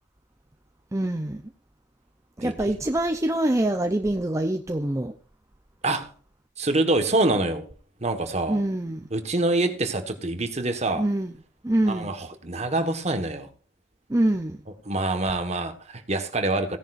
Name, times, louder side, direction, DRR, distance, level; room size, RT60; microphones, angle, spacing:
voice 1, 0.9-1.4 2.4-5.1 8.5-9.1 10.9-11.3 11.6-12.1 14.1-14.6, right 1 dB, 15° right, 0.6 m, -25 dB
voice 2, 6.6-7.6 8.0-8.6 9.1-11.0 11.9-13.5 14.9-16.8, right 2 dB, 40° right, 1.5 m, -25 dB
16.5 x 10.5 x 2.6 m
head